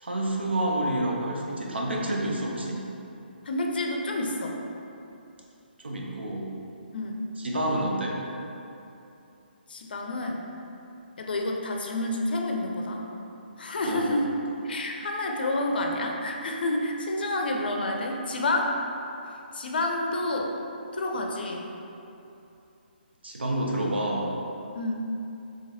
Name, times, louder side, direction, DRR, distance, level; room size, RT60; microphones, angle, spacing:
voice 1, 0.0-2.8 5.8-6.5 7.4-8.2 13.9-14.1 23.2-24.3, right 1 dB, 85° right, -2 dB, 0.6 m, -28 dB
voice 2, 3.5-4.5 6.9-7.2 9.7-10.4 11.2-13.0 13.6-14.4 14.6-18.7 19.5-20.5 21.0-21.7 24.7-24.9, left 2 dB, 65° left, 1 dB, 0.5 m, -29 dB
3.8 x 3.3 x 2.6 m, 2.8 s
figure-of-eight pair, 145°, 6 cm